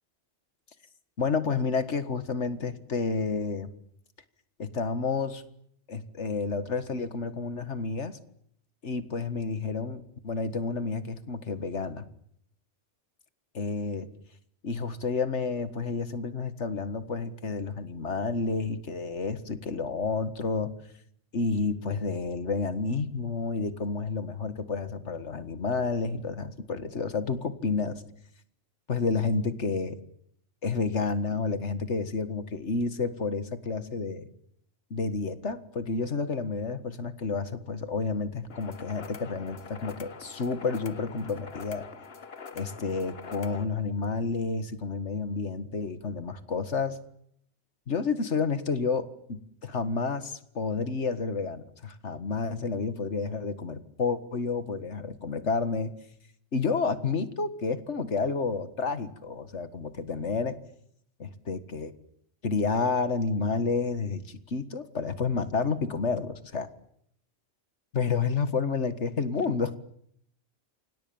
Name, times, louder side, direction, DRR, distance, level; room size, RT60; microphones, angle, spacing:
voice 1, 1.2-3.7 4.6-5.4 5.9-8.2 8.8-12.1 13.5-14.1 14.6-20.7 21.3-28.0 28.9-30.0 30.6-34.3 34.9-41.9 42.5-47.0 47.9-55.9 56.5-60.6 61.2-61.9 62.4-66.7 67.9-69.8, left 4 dB, 80° left, 11 dB, 2.0 m, -30 dB
sound 1, 38.5-43.7, left 5 dB, 60° left, 1.6 m, -45 dB
29.0 x 25.5 x 7.2 m, 0.71 s
omnidirectional pair, 1.2 m